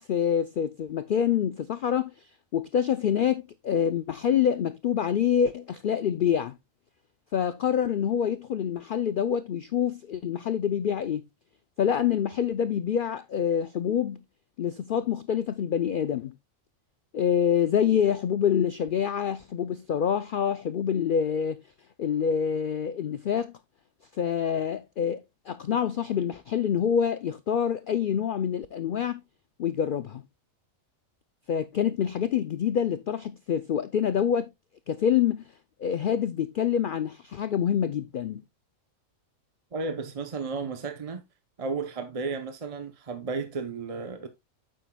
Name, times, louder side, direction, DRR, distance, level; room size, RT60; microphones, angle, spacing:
voice 1, 0.0-2.1 2.5-6.5 7.3-11.3 11.8-14.2 14.6-16.3 17.1-21.6 22.0-23.5 24.1-29.2 29.6-30.2 31.5-34.5 34.9-35.4 35.8-38.4, left 8 dB, 70° left, 0.5 m, -26 dB
voice 2, 39.7-41.2 41.6-44.3, right 4 dB, 35° right, 0.6 m, -33 dB
9.1 x 7.8 x 2.2 m
omnidirectional pair, 1.4 m